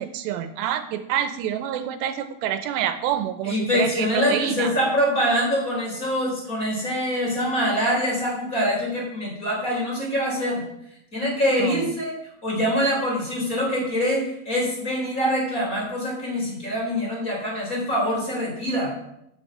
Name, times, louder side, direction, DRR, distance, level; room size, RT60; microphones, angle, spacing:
voice 1, 0.0-4.7 11.6-11.8, right 10 dB, 85° right, 10 dB, 2.8 m, -27 dB
voice 2, 3.4-10.6 11.1-12.1 12.4-18.9, equal, 20° left, -3 dB, 3.8 m, -24 dB
9.8 x 7.1 x 7.9 m, 0.81 s
omnidirectional pair, 5.0 m